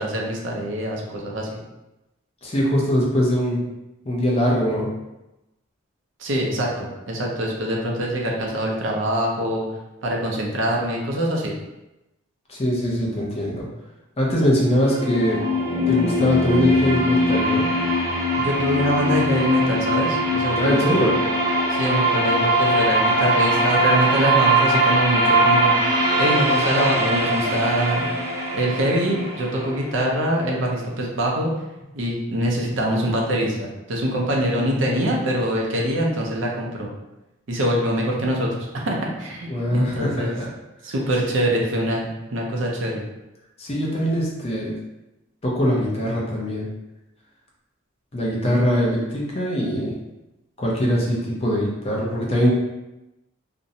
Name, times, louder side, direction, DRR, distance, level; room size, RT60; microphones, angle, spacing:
voice 1, 0.0-1.5 6.2-9.7 10.0-11.5 18.4-20.9 21.7-28.1 28.5-31.5 31.9-36.9 37.5-40.3 40.8-43.0, equal, 65° right, -1 dB, 0.5 m, -24 dB
voice 2, 2.4-3.6 4.1-4.9 12.5-13.7 14.2-15.4 15.9-17.7 20.5-21.2 39.5-40.5 43.6-44.8 45.4-46.7 48.1-49.9 50.6-52.6, equal, 30° left, -4 dB, 0.5 m, -22 dB
sound 1, 14.6-30.6, equal, 15° right, 0.6 m, -21 dB
2.5 x 2.0 x 2.7 m, 0.97 s
head